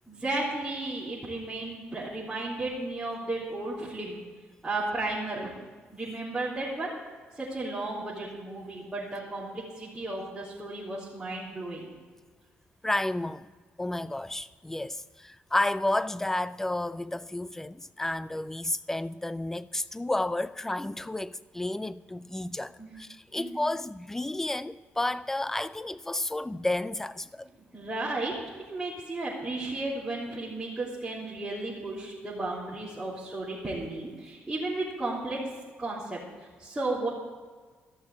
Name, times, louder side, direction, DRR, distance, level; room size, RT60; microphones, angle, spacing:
voice 1, 0.1-4.2 4.6-5.5 5.9-6.9 7.3-11.9 22.8-22.9 23.4-23.6 27.7-28.4 28.7-35.4 35.8-36.2 36.6-37.1, right 2 dB, 15° right, 3.2 m, -34 dB
voice 2, 12.8-13.5 13.8-27.5, left 1 dB, 10° left, 0.4 m, -31 dB
14.0 x 6.5 x 8.3 m
cardioid pair, 95°, 4 cm